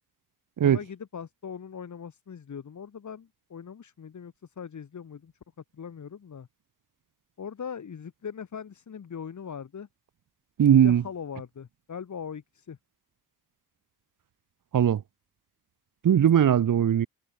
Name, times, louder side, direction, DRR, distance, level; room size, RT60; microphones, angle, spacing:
voice 1, 0.6-5.3 5.7-6.5 7.4-9.9 10.8-12.8, left 7 dB, 45° left, 8.0 m, -40 dB
voice 2, 10.6-11.0 14.7-15.0 16.0-17.1, right 9 dB, 50° right, 2.0 m, -19 dB
cardioid pair, 100°, 39 cm